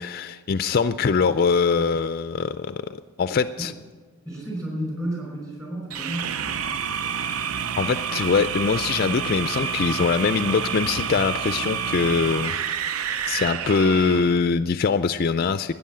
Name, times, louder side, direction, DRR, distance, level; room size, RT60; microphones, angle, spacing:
voice 1, 0.0-2.8 3.2-3.7 7.8-12.5 13.2-15.7, left 5 dB, 45° left, 12 dB, 0.3 m, -22 dB
voice 2, 4.3-6.7, right 1 dB, 15° right, -2 dB, 5.4 m, -32 dB
sound 1, 5.9-14.4, right 7 dB, 85° right, 0.5 m, -28 dB
13.0 x 9.5 x 8.6 m, 1.5 s
head